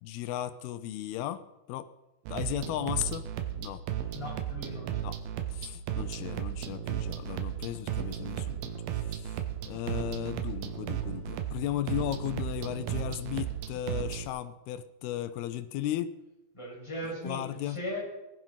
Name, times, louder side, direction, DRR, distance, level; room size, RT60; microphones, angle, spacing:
voice 1, 0.0-1.4 1.7-1.9 2.3-3.3 3.6-3.8 5.0-5.2 5.5-8.7 9.0-9.3 9.7-16.2 17.2-17.8, left 12 dB, 80° left, 12 dB, 2.5 m, -35 dB
sound 1, 2.3-14.3, right 10 dB, 75° right, 2.9 m, -35 dB
voice 2, 4.1-5.1 16.5-18.0, equal, 5° left, -4 dB, 6.1 m, -38 dB
19.0 x 11.0 x 5.7 m, 0.96 s
omnidirectional pair, 4.7 m